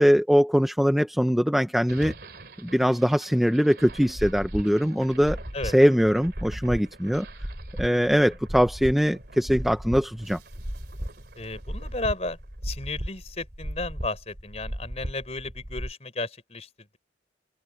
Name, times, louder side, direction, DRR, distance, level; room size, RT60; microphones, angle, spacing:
voice 1, 0.0-2.1 2.6-5.4 5.6-7.3 7.8-10.4, equal, ahead, 0.6 m, -22 dB
sound 1, 1.8-14.0, right 2 dB, 60° right, 2.8 m, -48 dB
sound 2, 3.9-15.9, equal, 35° right, 3.1 m, -36 dB
voice 2, 11.4-12.4 12.6-16.7, left 2 dB, 35° left, 4.3 m, -33 dB
head